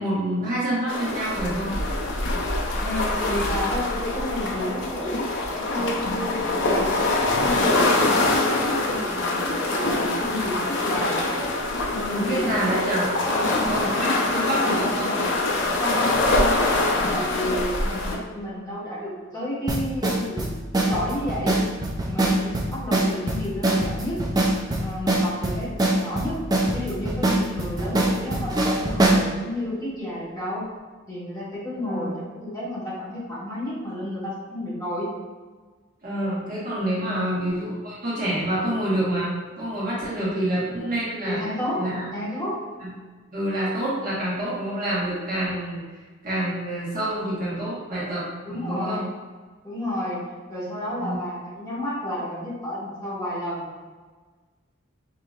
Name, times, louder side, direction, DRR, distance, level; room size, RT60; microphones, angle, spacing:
voice 1, 0.0-1.8 11.9-13.0 13.7-15.1 31.8-32.2 36.0-41.4 41.8-42.1 42.8-42.9 43.3-45.9 46.2-49.0 51.0-51.2, right 1 dB, 45° right, -8 dB, 1.2 m, -27 dB
sound 1, 0.9-18.2, left 2 dB, 60° left, 0.6 m, -24 dB
voice 2, 2.8-7.1 7.4-11.3 11.9-12.5 13.3-14.6 15.8-16.8 17.1-21.6 22.0-24.2 24.8-30.7 31.1-35.1 37.1-37.4 41.2-41.8 42.1-42.5 48.4-49.1 49.6-50.2 50.5-53.6, left 1 dB, 15° left, -10 dB, 1.3 m, -31 dB
sound 2, 19.7-29.3, right 1 dB, 20° right, 0.4 m, -23 dB
4.8 x 2.8 x 2.4 m, 1.4 s
head